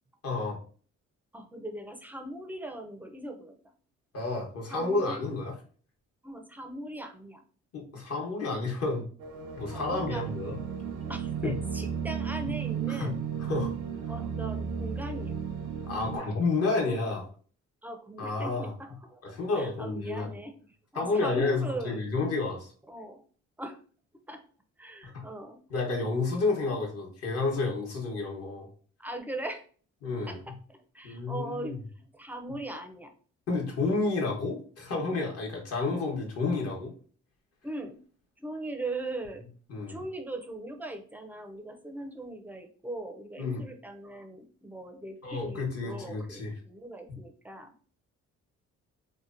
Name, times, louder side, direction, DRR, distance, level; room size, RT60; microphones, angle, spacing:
voice 1, 0.2-0.6 4.1-5.5 7.7-9.1 9.6-10.5 11.4-11.5 12.9-13.1 13.4-13.7 15.9-17.3 18.2-18.7 19.2-20.3 20.9-22.7 25.7-28.7 30.0-30.4 31.0-31.8 33.5-36.9 39.7-40.0 43.4-43.6 45.2-46.5, left 3 dB, 55° left, 0 dB, 1.0 m, -30 dB
voice 2, 1.3-3.6 4.7-5.2 6.2-7.4 9.7-10.2 11.1-13.2 14.1-15.4 17.8-20.7 20.9-22.1 22.9-23.2 23.6-23.8 24.3-24.4 24.8-25.6 29.0-29.6 30.3-33.1 37.6-38.0 38.4-39.5 39.9-47.7, right 1 dB, 5° right, 5 dB, 0.4 m, -40 dB
sound 1, 9.2-16.2, right 7 dB, 80° right, 0.6 m, -34 dB
2.9 x 2.2 x 2.4 m, 0.42 s
cardioid pair, 90°, 30 cm